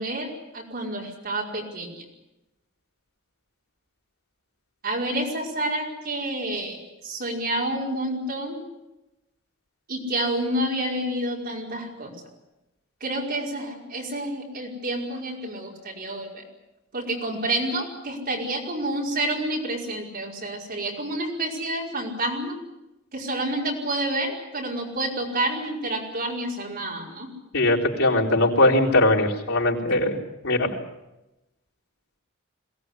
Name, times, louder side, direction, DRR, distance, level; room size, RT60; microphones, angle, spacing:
voice 1, 0.0-2.0 4.8-6.8 7.0-8.6 9.9-12.1 13.0-16.4 16.9-22.6 23.1-27.3, right 1 dB, 45° right, -1 dB, 5.2 m, -29 dB
voice 2, 27.5-30.2 30.4-30.7, left 1 dB, 85° left, -3 dB, 4.3 m, -20 dB
22.0 x 18.0 x 9.9 m, 0.95 s
head